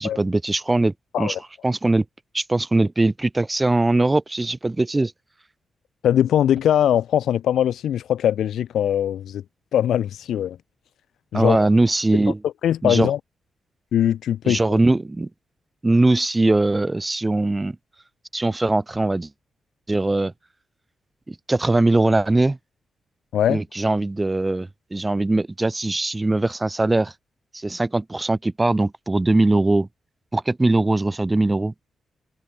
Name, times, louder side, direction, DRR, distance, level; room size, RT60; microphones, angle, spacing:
voice 1, 0.0-1.3 1.6-2.0 2.3-5.1 11.3-12.4 12.8-13.1 14.4-15.3 15.8-17.8 18.3-19.3 19.9-20.3 21.3-22.6 23.5-27.1 27.5-29.9 30.3-31.7, right 2 dB, 15° right, 4.9 m, -21 dB
voice 2, 6.0-9.4 9.7-10.6 11.3-11.6 12.4-13.2 13.9-14.6 23.3-23.6, left 10 dB, 85° left, 5.3 m, -21 dB
cardioid pair, 105°, 0 cm